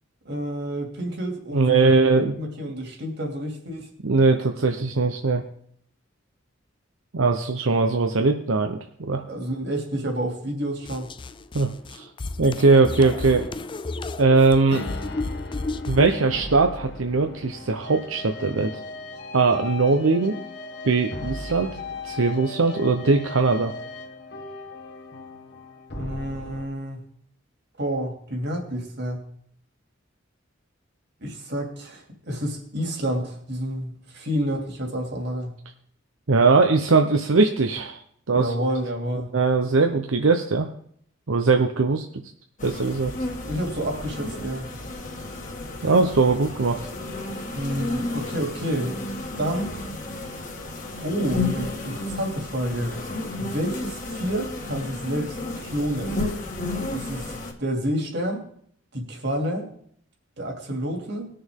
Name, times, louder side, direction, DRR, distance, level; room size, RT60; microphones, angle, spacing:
voice 1, 0.2-3.9 9.3-11.1 25.9-27.0 27.8-29.2 31.2-35.5 38.3-39.3 43.4-44.7 47.5-49.0 49.4-49.7 51.0-53.0 53.4-56.2 56.9-57.3 57.6-58.4 58.9-59.7 60.4-61.3, equal, 60° right, 2 dB, 2.6 m, -29 dB
voice 2, 1.5-2.3 4.0-5.4 7.1-9.2 11.5-12.0 12.4-13.4 14.2-14.8 15.9-18.7 19.3-20.4 20.8-21.7 22.0-23.7 36.3-38.0 38.3-38.5 39.3-40.7 41.3-42.1 42.6-43.1 45.8-46.8, right 3 dB, 90° right, 5 dB, 0.8 m, -20 dB
sound 1, 10.8-16.2, left 2 dB, 25° left, 0.4 m, -32 dB
sound 2, 14.7-26.7, left 3 dB, 60° left, 1.6 m, -37 dB
sound 3, 42.6-57.5, left 2 dB, 40° left, 1.9 m, -32 dB
20.5 x 6.8 x 3.7 m, 0.63 s
head